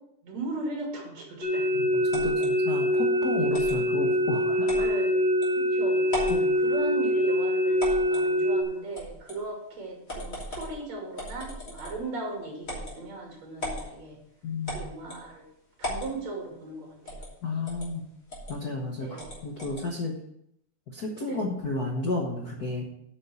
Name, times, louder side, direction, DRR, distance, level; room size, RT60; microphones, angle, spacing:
voice 1, 0.2-2.0 4.8-5.2 5.6-6.3 6.5-14.2 14.7-15.5 15.8-17.2 19.0-19.3 21.3-21.4, right 2 dB, 60° right, -1 dB, 3.8 m, -37 dB
sound 1, 1.4-8.6, equal, 5° right, 2.6 m, -24 dB
voice 2, 2.1-4.9 6.3-6.5 14.4-14.8 17.4-18.0 18.5-20.1 20.9-22.9, left 2 dB, 50° left, -1 dB, 1.2 m, -32 dB
sound 2, 2.1-2.5 3.5-3.8 4.7-4.9 5.4-5.5 6.0-6.4 7.8-8.3 8.9-9.4 10.1-10.7 11.2-12.0 12.6-13.0 13.6-13.9 14.7-15.2 15.8-16.1 17.1-17.3 17.7-17.9 18.3-18.5 19.2-19.9, left 1 dB, 25° left, 3.1 m, -36 dB
9.0 x 5.8 x 7.1 m, 0.76 s
omnidirectional pair, 3.5 m